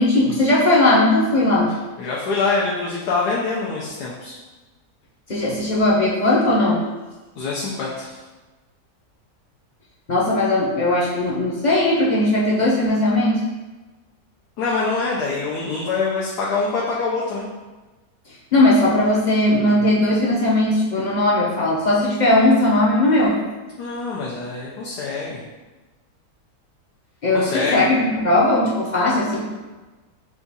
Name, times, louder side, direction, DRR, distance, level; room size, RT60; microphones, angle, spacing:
voice 1, 0.0-1.7 5.3-6.8 10.1-13.4 18.5-23.3 27.2-29.4, left 1 dB, 45° left, -6 dB, 0.6 m, -18 dB
voice 2, 2.0-4.3 7.4-8.2 14.6-17.5 23.8-25.4 27.3-27.9, left 4 dB, 90° left, -5 dB, 1.3 m, -25 dB
4.7 x 2.4 x 4.0 m, 1.2 s
omnidirectional pair, 1.7 m